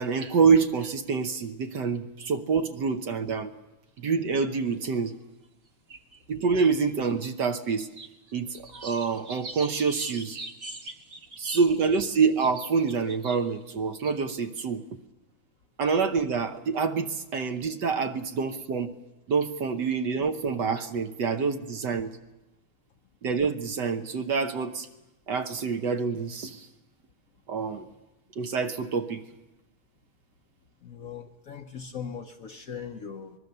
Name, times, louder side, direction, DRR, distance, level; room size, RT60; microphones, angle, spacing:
voice 1, 0.0-3.5 4.0-5.1 6.3-7.9 8.3-10.4 11.4-14.8 15.8-18.9 19.3-22.1 23.2-24.9 25.3-26.7 27.5-27.9 28.4-29.2, right 5 dB, 60° right, 7 dB, 1.5 m, -26 dB
sound 1, 4.9-5.0 5.9-6.2 6.6-7.3 7.6-13.4 14.0-14.1, right 2 dB, 35° right, 1.5 m, -41 dB
voice 2, 30.8-33.4, left 7 dB, 55° left, 5 dB, 1.1 m, -39 dB
24.0 x 21.0 x 6.7 m, 0.98 s
omnidirectional pair, 2.2 m